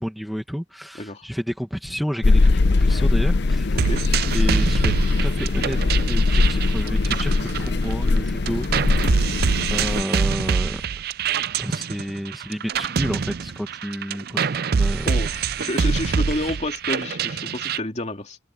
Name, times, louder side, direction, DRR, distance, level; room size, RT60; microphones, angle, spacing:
voice 1, 0.0-3.8 4.3-8.8 9.7-10.8 11.6-15.1 16.3-16.6, equal, ahead, 1.7 m, -31 dB
sound 1, 2.2-10.0, left 3 dB, 60° left, 0.6 m, -20 dB
voice 2, 3.7-4.1 15.0-18.4, left 1 dB, 35° left, 2.6 m, -29 dB
sound 2, 3.8-8.2 8.5-17.8, right 5 dB, 55° right, 0.5 m, -25 dB
head